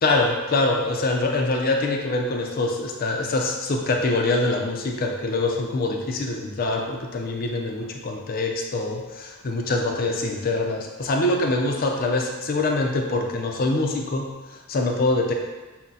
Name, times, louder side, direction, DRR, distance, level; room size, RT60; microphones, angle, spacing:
voice 1, 0.0-15.3, left 2 dB, 40° left, 2 dB, 0.4 m, -24 dB
5.9 x 2.1 x 2.7 m, 1.2 s
head